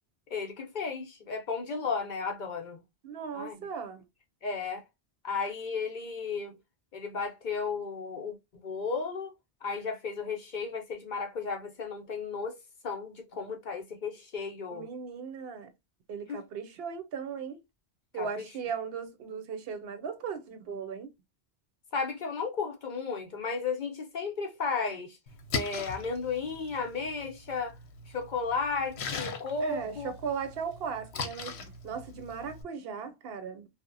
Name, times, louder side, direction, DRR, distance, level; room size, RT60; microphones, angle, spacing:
voice 1, 0.3-2.8 3.3-3.7 4.4-4.8 5.2-6.6 6.9-8.4 8.6-9.3 9.6-12.6 12.8-14.9 16.3-16.4 18.1-18.5 21.9-25.2 25.5-27.7 28.1-30.1, left 4 dB, 55° left, 0.6 m, -34 dB
voice 2, 3.0-4.0 14.7-15.7 16.1-17.6 18.1-21.1 29.6-33.7, right 6 dB, 70° right, 0.8 m, -37 dB
Splash splatter, 25.3-32.6, left 5 dB, 85° left, 0.9 m, -40 dB
2.8 x 2.0 x 2.5 m
omnidirectional pair, 1.1 m